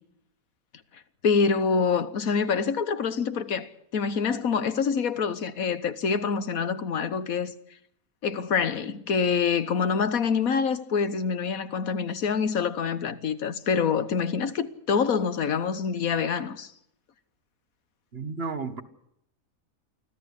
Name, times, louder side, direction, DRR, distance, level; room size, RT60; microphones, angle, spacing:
voice 1, 1.2-7.5 8.2-16.7, left 6 dB, 80° left, 1.6 m, -26 dB
voice 2, 18.1-18.8, right 4 dB, 45° right, 1.7 m, -32 dB
25.0 x 15.0 x 8.3 m
omnidirectional pair, 1.5 m